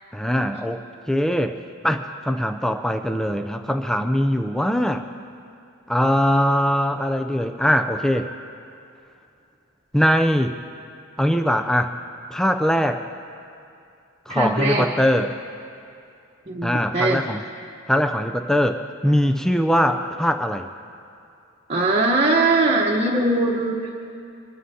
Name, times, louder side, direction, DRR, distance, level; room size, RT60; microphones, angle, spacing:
voice 1, 0.1-0.8 1.1-1.6 1.8-5.0 5.9-8.3 9.9-10.5 11.2-11.9 12.3-13.0 14.3-15.4 16.6-17.4 17.9-20.7, equal, ahead, 6 dB, 0.4 m, -21 dB
voice 2, 14.3-14.9 16.5-17.2 21.7-23.9, right 2 dB, 30° right, -3 dB, 1.0 m, -21 dB
24.0 x 12.5 x 2.8 m, 2.5 s
head